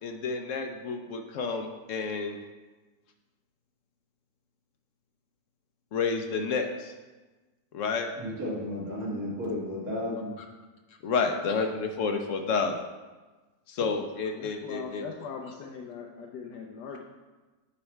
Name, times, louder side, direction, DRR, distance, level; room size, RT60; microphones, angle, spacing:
voice 1, 0.0-2.4 5.9-6.9 7.7-8.1 10.4-10.5 11.0-12.8 13.7-15.1, left 4 dB, 65° left, 5 dB, 0.8 m, -30 dB
voice 2, 8.2-10.3, left 1 dB, 65° right, -7 dB, 2.7 m, -33 dB
voice 3, 14.4-17.0, left 6 dB, 85° left, 1 dB, 1.2 m, -40 dB
9.7 x 3.3 x 4.4 m, 1.2 s
omnidirectional pair, 1.7 m